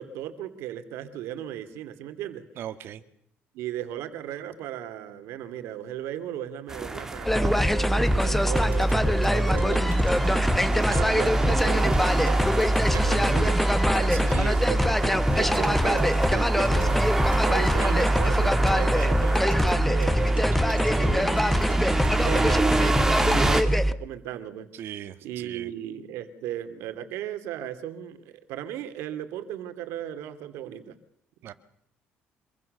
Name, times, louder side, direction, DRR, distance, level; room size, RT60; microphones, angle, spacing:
voice 1, 0.0-2.4 3.5-10.0 10.7-13.6 14.3-20.4 21.0-21.7 22.2-24.7 25.2-31.0, right 11 dB, 85° right, 8 dB, 2.7 m, -36 dB
voice 2, 2.6-3.0 13.9-14.5 24.7-25.7 31.4-31.5, right 11 dB, 65° right, 10 dB, 2.0 m, -38 dB
sound 1, 6.7-23.6, right 2 dB, 10° right, 2.5 m, -29 dB
sound 2, 7.3-23.9, equal, 5° left, 1.1 m, -23 dB
sound 3, 8.2-22.8, right 5 dB, 35° right, 6.7 m, -38 dB
26.0 x 23.0 x 6.7 m, 0.68 s
cardioid pair, 130°, 4 cm